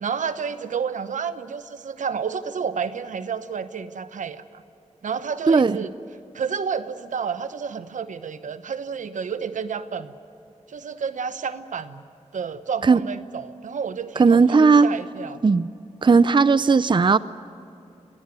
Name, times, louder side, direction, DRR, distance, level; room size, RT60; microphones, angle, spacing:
voice 1, 0.0-4.6 5.0-5.9 6.3-10.1 10.7-12.0 12.3-15.4, right 6 dB, 85° right, 12 dB, 0.9 m, -30 dB
voice 2, 5.5-5.8 12.9-13.0 14.2-14.9 15.4-15.7 16.0-17.2, right 4 dB, 40° right, 16 dB, 0.6 m, -16 dB
22.5 x 17.5 x 9.3 m, 2.7 s
cardioid pair, 50°, 13 cm